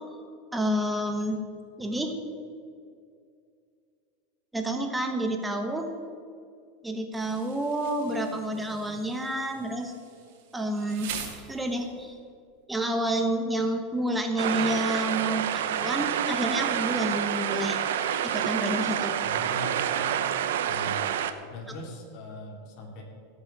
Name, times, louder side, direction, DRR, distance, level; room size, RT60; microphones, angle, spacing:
voice 1, 0.5-1.4 1.8-2.2 4.5-5.9 6.8-9.9 10.5-11.1 11.5-12.1 12.7-17.8 18.2-19.2, right 1 dB, 5° right, 4 dB, 1.2 m, -29 dB
Insect, 7.1-12.1, right 7 dB, 65° right, 2.3 m, -43 dB
sound 1, 14.4-21.3, right 9 dB, 85° right, 0.8 m, -28 dB
voice 2, 19.2-20.0 20.7-21.2 21.5-23.0, left 2 dB, 50° left, 0 dB, 2.9 m, -41 dB
17.5 x 6.5 x 6.1 m, 2.3 s
supercardioid pair, 140°, 0 cm